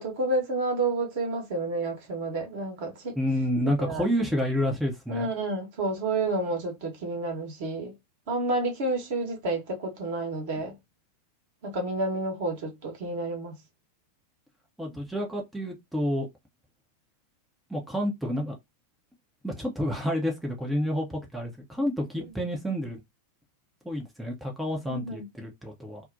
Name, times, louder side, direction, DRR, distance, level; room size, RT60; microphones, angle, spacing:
voice 1, 0.0-3.1 3.6-4.1 5.1-7.9 8.3-10.7 11.6-13.5 22.3-22.4 24.9-25.3, right 2 dB, 50° right, 1.0 m, -30 dB
voice 2, 3.2-5.3 14.8-16.3 17.7-18.5 19.4-23.0 23.8-26.0, equal, 5° right, 0.6 m, -29 dB
2.6 x 2.0 x 2.6 m
figure-of-eight pair, 90°, 0 cm